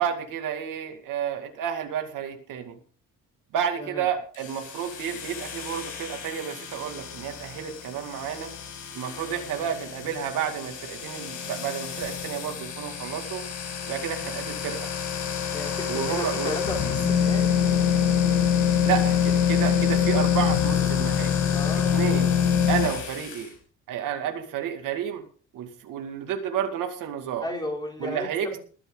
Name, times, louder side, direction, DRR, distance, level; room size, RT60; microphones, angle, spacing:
voice 1, 0.0-2.8 3.5-8.5 8.9-13.4 13.8-14.9 15.9-16.5 18.8-21.3 21.9-22.4 22.7-23.5 23.9-25.2 25.5-27.5 28.0-28.5, right 9 dB, 75° right, 5 dB, 2.4 m, -31 dB
voice 2, 3.8-4.1 15.5-17.5 21.5-22.1 27.4-28.3, left 1 dB, 15° left, 0 dB, 3.9 m, -34 dB
sound 1, 4.3-23.5, left 8 dB, 70° left, 6.4 m, -26 dB
21.0 x 9.9 x 3.9 m, 0.41 s
cardioid pair, 175°, 32 cm